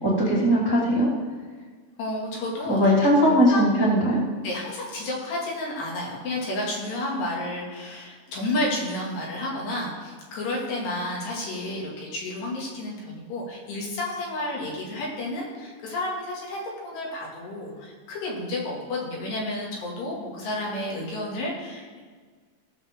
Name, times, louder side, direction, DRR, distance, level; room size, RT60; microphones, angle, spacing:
voice 1, 0.0-1.1 2.7-4.2, equal, 10° right, -6 dB, 1.0 m, -20 dB
voice 2, 2.0-4.1 4.4-22.0, left 1 dB, 80° left, -3 dB, 4.3 m, -31 dB
17.5 x 6.7 x 3.7 m, 1.5 s
omnidirectional pair, 4.8 m